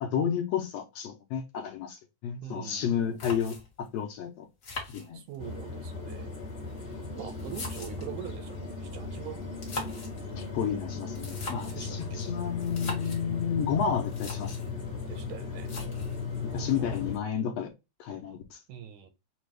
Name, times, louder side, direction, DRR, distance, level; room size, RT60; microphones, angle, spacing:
voice 1, 0.0-4.5 4.9-5.2 10.4-14.6 16.4-17.7 18.0-18.6, left 7 dB, 70° left, 1.7 m, -31 dB
voice 2, 2.4-3.3 5.1-6.3 7.1-9.4 11.7-12.3 15.1-15.7 16.5-17.0 18.7-19.1, right 10 dB, 90° right, 2.2 m, -43 dB
sound 1, 2.8-2.9 3.2-3.9 4.6-5.6 6.5-8.2 9.4-10.2 11.1-11.9 12.6-13.2 13.8-13.9 14.0-14.7 15.6-16.2, left 3 dB, 50° left, 1.0 m, -41 dB
sound 2, 5.4-17.2, left 5 dB, 20° left, 1.1 m, -36 dB
6.0 x 2.4 x 3.3 m
omnidirectional pair, 3.5 m